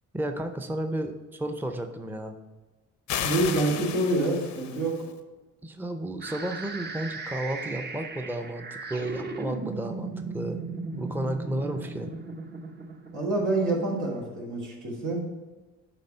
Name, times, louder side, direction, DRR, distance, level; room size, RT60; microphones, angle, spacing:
voice 1, 0.1-2.3 5.6-10.6 10.9-12.1, right 1 dB, 5° right, 6 dB, 0.6 m, -32 dB
sound 1, 3.1-5.1, left 9 dB, 70° left, 0.7 m, -33 dB
voice 2, 3.2-5.1 13.1-15.2, right 2 dB, 85° right, -4 dB, 2.8 m, -27 dB
sound 2, 6.2-14.1, right 3 dB, 35° right, 0.8 m, -37 dB
9.9 x 3.5 x 5.5 m, 1.2 s
cardioid pair, 90°, 30 cm